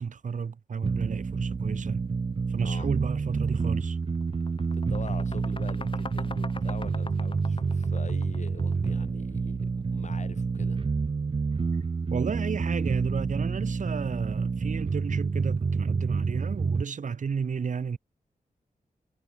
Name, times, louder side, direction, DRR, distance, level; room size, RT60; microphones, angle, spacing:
voice 1, 0.0-2.0 2.5-4.0 12.1-18.0, right 6 dB, 55° right, 1.3 m, -32 dB
sound 1, 0.8-16.8, right 4 dB, 40° right, 0.8 m, -28 dB
sound 2, 3.5-3.7 4.0-9.0, left 3 dB, 35° left, 6.1 m, -42 dB
voice 2, 4.4-10.8, left 4 dB, 50° left, 7.9 m, -44 dB
wide cardioid pair, 85°, 15 cm